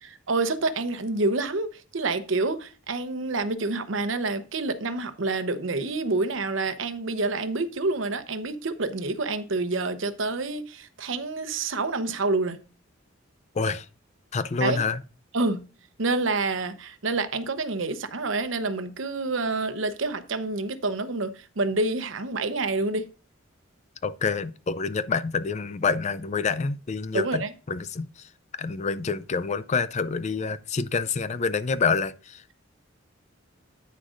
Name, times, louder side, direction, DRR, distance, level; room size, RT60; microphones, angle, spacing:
voice 1, 0.0-12.6 14.6-14.8 15.3-15.6 16.0-23.1 27.1-27.5, right 3 dB, 70° right, 0.9 m, -28 dB
voice 2, 13.6-13.9 14.3-15.0 24.0-28.3 28.6-32.5, left 5 dB, 35° left, 0.4 m, -27 dB
9.9 x 9.3 x 2.5 m
head